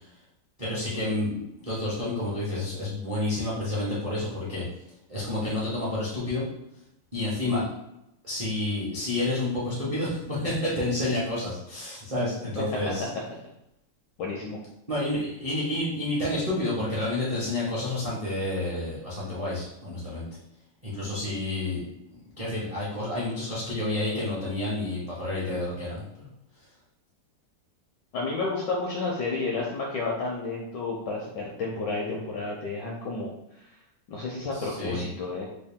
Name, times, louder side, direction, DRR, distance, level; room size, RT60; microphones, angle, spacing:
voice 1, 0.6-4.6 5.1-6.4 7.1-7.6 8.2-13.1 14.9-20.2 20.8-21.8 22.4-26.3 34.5-35.1, left 2 dB, 45° right, -7 dB, 0.4 m, -29 dB
voice 2, 14.2-14.6 28.1-33.3 34.1-35.4, left 3 dB, 75° left, -2 dB, 1.0 m, -31 dB
3.7 x 2.3 x 3.5 m, 0.84 s
omnidirectional pair, 2.4 m